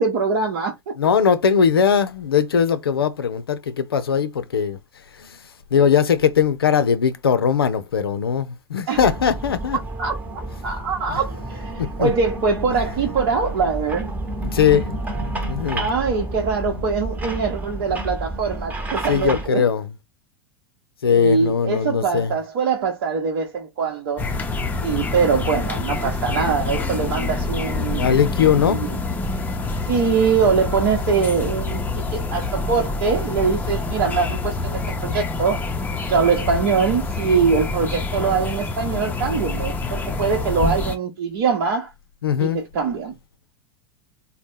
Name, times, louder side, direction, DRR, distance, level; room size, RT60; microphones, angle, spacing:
voice 1, 0.0-0.9 8.9-9.0 10.0-14.1 15.8-19.6 21.1-24.3 24.8-28.1 28.6-28.9 29.9-31.8 32.1-35.6 36.1-41.9 42.4-43.1, right 5 dB, 50° right, 0.9 m, -23 dB
voice 2, 1.0-4.8 5.2-5.4 5.7-9.8 11.1-11.2 11.8-12.1 14.4-15.9 19.1-19.9 21.0-22.3 27.9-28.8 42.2-42.6, left 7 dB, 70° left, 0.5 m, -20 dB
sound 1, 8.9-19.5, right 1 dB, 15° right, 1.0 m, -30 dB
sound 2, 24.2-40.9, left 3 dB, 15° left, 0.7 m, -26 dB
4.0 x 2.2 x 3.4 m
figure-of-eight pair, 85°, 13 cm